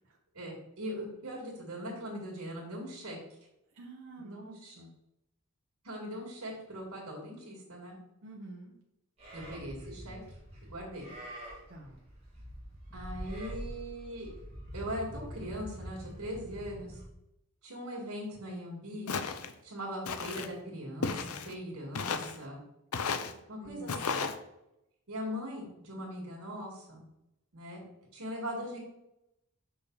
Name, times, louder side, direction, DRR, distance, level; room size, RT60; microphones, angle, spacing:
voice 1, 0.3-3.2 4.2-4.7 5.8-8.0 9.3-10.2 10.7-11.1 12.9-14.3 14.7-17.0 17.6-19.2 19.6-22.6 23.5-24.2 25.1-27.0 27.5-27.8 28.1-28.8, equal, 90° right, -6 dB, 2.3 m, -40 dB
voice 2, 3.7-4.9 8.2-8.8 11.7-12.0 23.6-24.1, right 2 dB, 60° right, -2 dB, 1.2 m, -48 dB
Livestock farm animals working animals, 9.2-17.0, right 1 dB, 25° right, 2.4 m, -45 dB
Walk footsteps, 19.1-19.5 20.1-20.5 21.0-21.5 22.0-22.4 22.9-23.3 23.9-24.4, left 5 dB, 75° left, 0.6 m, -34 dB
6.2 x 5.7 x 4.0 m, 0.86 s
head